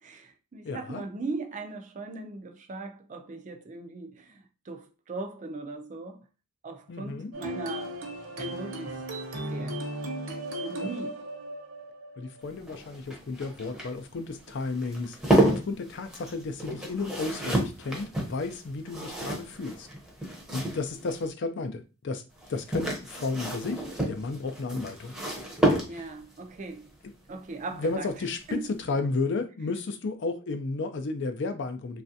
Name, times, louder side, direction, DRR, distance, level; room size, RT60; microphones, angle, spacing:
voice 1, 0.0-6.2 6.6-8.0 8.4-9.0 9.4-9.8 10.6-11.2 25.7-26.9 27.3-28.1 28.5-28.7, right 3 dB, 35° right, 0.4 m, -39 dB
voice 2, 0.6-1.0 6.9-7.3 10.7-10.9 12.2-19.9 20.5-22.2 22.5-25.1 25.9-26.1 27.7-32.0, left 3 dB, 60° left, 0.4 m, -33 dB
sound 1, 7.3-12.8, right 1 dB, 65° right, 0.8 m, -36 dB
sound 2, 12.4-21.3 22.4-26.3 27.9-28.2 28.5-28.6, right 1 dB, 5° right, 0.7 m, -30 dB
3.2 x 2.4 x 2.7 m
head